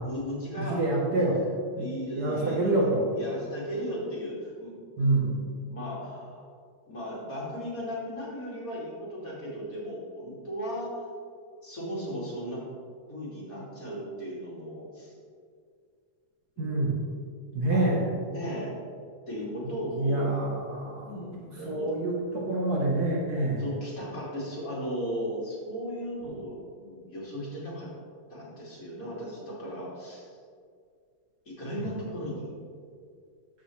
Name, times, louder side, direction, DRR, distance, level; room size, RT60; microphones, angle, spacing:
voice 1, 0.0-0.9 1.8-2.8 3.1-6.5 6.9-11.1 11.6-12.6 13.1-15.1 16.6-16.9 17.7-18.7 19.3-20.3 21.0-21.9 23.6-27.9 28.3-30.3 31.5-32.5, equal, 40° left, -6 dB, 3.0 m, -36 dB
voice 2, 0.6-1.4 1.7-1.9 2.2-3.1 5.0-5.3 16.6-17.0 17.5-18.1 19.9-23.6, right 2 dB, 50° right, -3 dB, 1.6 m, -27 dB
14.0 x 6.1 x 3.3 m, 2.1 s
omnidirectional pair, 2.3 m